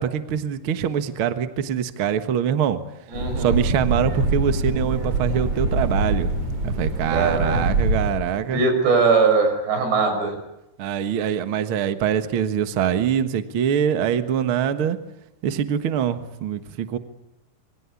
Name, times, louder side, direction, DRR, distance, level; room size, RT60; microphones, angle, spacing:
voice 1, 0.0-2.8 3.4-6.3 6.8-8.6 10.8-15.0 15.4-17.0, right 9 dB, 70° right, 10 dB, 1.2 m, -24 dB
sound 1, 3.1-8.1, right 2 dB, 45° right, 7.0 m, -24 dB
voice 2, 3.1-3.5 7.1-7.6 8.5-10.3, right 4 dB, 85° right, 5 dB, 8.5 m, -20 dB
26.5 x 23.5 x 8.4 m, 0.90 s
omnidirectional pair, 4.8 m